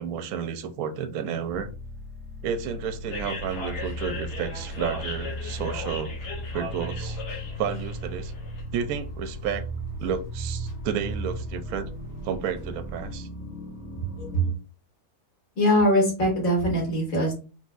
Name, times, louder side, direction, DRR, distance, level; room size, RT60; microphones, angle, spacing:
voice 1, 0.0-1.7 2.4-7.2 7.6-8.3 8.7-9.6 10.0-11.9 12.2-13.3, right 7 dB, 70° right, 1.0 m, -31 dB
sound 1, 1.5-14.5, equal, 10° right, 0.5 m, -37 dB
sound 2, 3.1-13.2, left 1 dB, 75° left, 1.6 m, -39 dB
voice 2, 15.6-17.4, equal, 60° left, 2.3 m, -22 dB
4.0 x 4.0 x 2.4 m
omnidirectional pair, 1.7 m